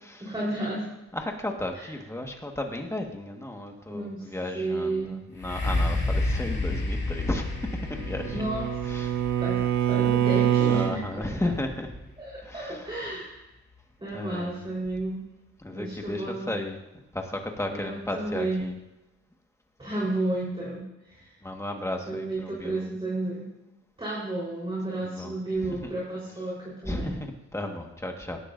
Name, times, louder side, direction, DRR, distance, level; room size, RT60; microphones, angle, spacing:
voice 1, 0.2-0.9 1.7-1.9 3.9-4.3 4.5-5.1 8.3-9.6 9.9-11.0 11.4-11.5 12.2-13.5 14.0-15.2 15.6-16.5 17.7-18.7 19.8-21.3 22.1-23.5 24.0-27.2, right 2 dB, 15° right, -7 dB, 4.2 m, -32 dB
voice 2, 1.1-7.5 7.9-8.4 8.8-9.4 10.6-11.9 12.4-12.8 14.1-14.6 15.6-16.8 17.1-18.7 21.4-22.9 25.0-25.4 25.6-25.9 26.8-28.4, left 1 dB, 10° left, 2 dB, 1.6 m, -34 dB
sound 1, 5.4-13.1 13.8-13.9, left 2 dB, 35° left, 2.6 m, -31 dB
Bowed string instrument, 7.6-11.0, right 10 dB, 70° right, 0.8 m, -25 dB
18.0 x 12.0 x 2.6 m, 0.96 s
wide cardioid pair, 110°, 29 cm